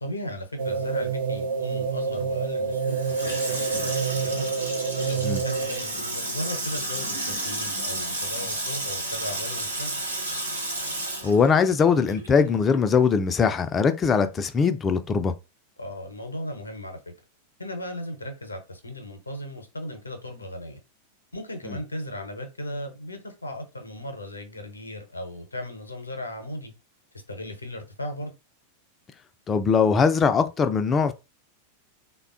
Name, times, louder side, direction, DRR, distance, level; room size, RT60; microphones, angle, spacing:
voice 1, 0.0-4.5 5.0-10.1 15.8-17.1 17.6-20.8 21.3-26.7 27.3-28.3, left 1 dB, 80° left, 0.7 m, -36 dB
sound 1, 0.6-6.0, right 5 dB, 60° right, 0.6 m, -28 dB
Water tap faucet / Sink (filling or washing), 2.7-12.4 12.7-12.8, right 1 dB, 85° right, 0.8 m, -32 dB
voice 2, 11.2-15.3 29.5-31.1, left 5 dB, 20° left, 0.3 m, -21 dB
3.4 x 2.2 x 2.4 m
figure-of-eight pair, 90°, 0 cm